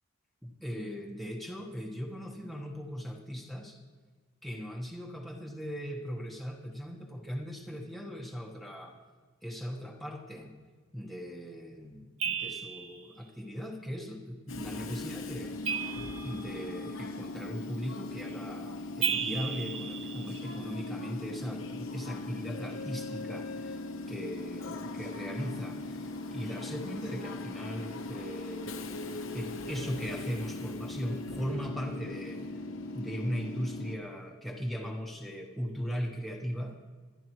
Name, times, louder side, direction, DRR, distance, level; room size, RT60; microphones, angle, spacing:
voice 1, 0.4-3.8 4.4-9.0 9.4-10.5 10.9-15.5 16.2-23.8 24.1-28.9 29.3-32.4 32.9-36.8, equal, ahead, 0 dB, 1.1 m, -38 dB
sound 1, 12.2-13.0 15.6-16.7 19.0-20.7, right 7 dB, 65° right, 1.3 m, -34 dB
Train / Subway metro underground, 14.5-34.0, left 2 dB, 65° left, 1.0 m, -39 dB
24.5 x 11.0 x 3.1 m, 1.5 s
head